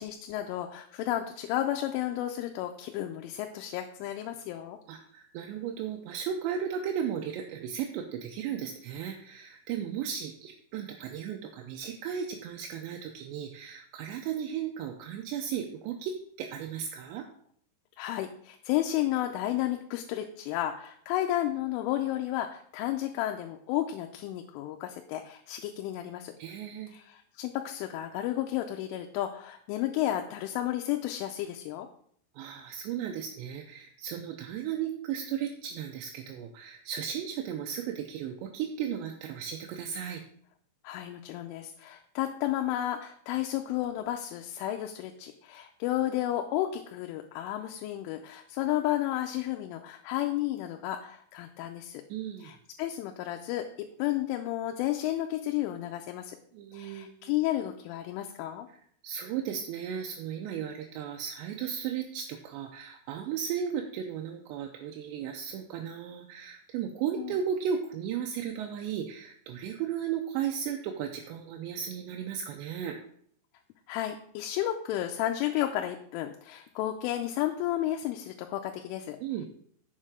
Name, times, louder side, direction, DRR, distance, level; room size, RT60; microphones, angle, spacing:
voice 1, 0.0-4.8 18.0-26.3 26.9-31.9 40.8-52.0 52.4-56.4 56.7-58.7 67.2-67.4 73.9-79.2, left 13 dB, 90° left, 4 dB, 3.2 m, -32 dB
voice 2, 4.9-17.3 26.4-26.9 32.4-40.2 52.1-52.5 56.5-57.3 59.0-73.0 79.2-79.5, right 8 dB, 80° right, 3 dB, 2.7 m, -35 dB
7.5 x 6.6 x 4.9 m, 0.64 s
omnidirectional pair, 5.5 m